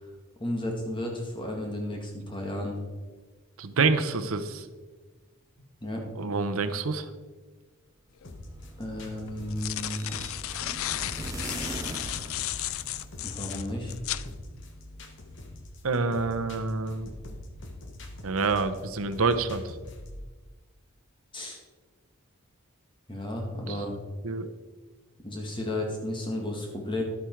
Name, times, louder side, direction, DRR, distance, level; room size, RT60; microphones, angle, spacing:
voice 1, 0.4-2.8 5.8-6.1 8.8-10.2 13.2-13.9 21.3-21.6 23.1-24.0 25.2-27.0, left 1 dB, 20° left, 1 dB, 1.9 m, -33 dB
voice 2, 3.6-4.7 6.2-7.1 15.8-17.1 18.2-19.7 23.7-23.8 24.2-24.5, right 4 dB, 75° right, 9 dB, 0.8 m, -27 dB
sound 1, 8.2-8.3 9.3-14.3, left 13 dB, 75° left, 0.4 m, -34 dB
sound 2, 8.2-20.3, left 1 dB, 55° left, 1.3 m, -44 dB
sound 3, 8.3-13.4, right 3 dB, 15° right, 0.3 m, -42 dB
11.5 x 8.4 x 4.6 m, 1.3 s
head